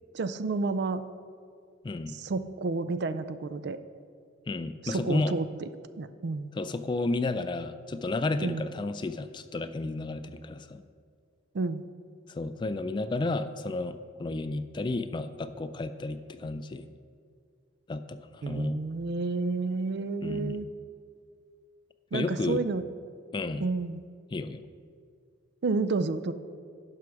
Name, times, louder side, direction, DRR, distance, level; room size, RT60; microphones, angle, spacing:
voice 1, 0.1-1.0 2.2-3.8 4.8-5.7 6.0-6.5 8.4-8.6 11.5-11.8 18.4-20.6 22.1-22.8 23.6-24.0 25.6-26.3, right 3 dB, 60° right, 12 dB, 0.4 m, -30 dB
voice 2, 1.8-2.2 4.5-5.3 6.5-10.8 12.3-16.9 17.9-18.8 20.2-20.6 22.1-22.6 23.3-23.7 24.3-24.6, left 2 dB, 25° left, 11 dB, 0.3 m, -32 dB
11.0 x 5.8 x 4.7 m, 2.2 s
head